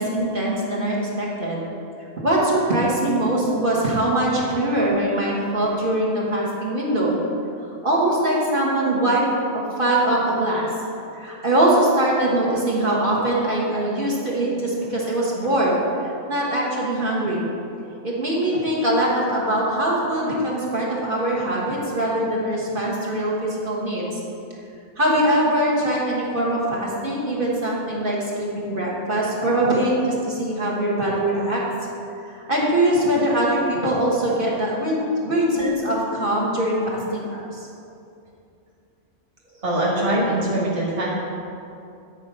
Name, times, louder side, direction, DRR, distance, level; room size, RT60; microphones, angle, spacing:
voice 1, 0.0-1.6 2.2-7.2 7.8-9.2 9.5-10.7 11.2-17.5 18.0-24.2 25.0-31.6 32.3-37.4, right 1 dB, 45° right, -5 dB, 1.5 m, -22 dB
voice 2, 39.6-41.1, right 1 dB, 30° right, -6 dB, 1.2 m, -22 dB
9.4 x 4.3 x 5.4 m, 2.6 s
omnidirectional pair, 1.2 m